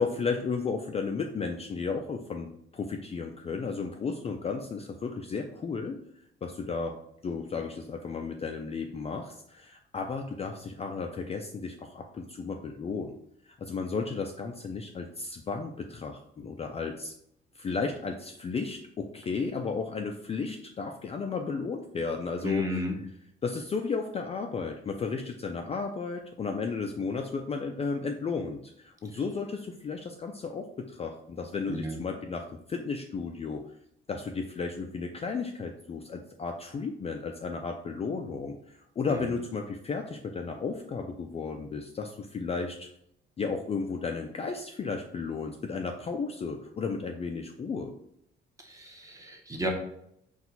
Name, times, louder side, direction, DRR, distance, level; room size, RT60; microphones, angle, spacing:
voice 1, 0.0-6.0 6.4-6.9 7.2-13.1 13.5-17.1 17.6-22.6 23.4-33.6 34.1-42.9 43.4-47.9, left 4 dB, 30° left, 3 dB, 0.3 m, -34 dB
voice 2, 22.4-22.9 29.1-29.2 31.7-32.0 39.1-39.3 48.6-49.7, equal, 15° right, 1 dB, 0.9 m, -33 dB
4.3 x 2.4 x 4.0 m, 0.74 s
cardioid pair, 125°, 21 cm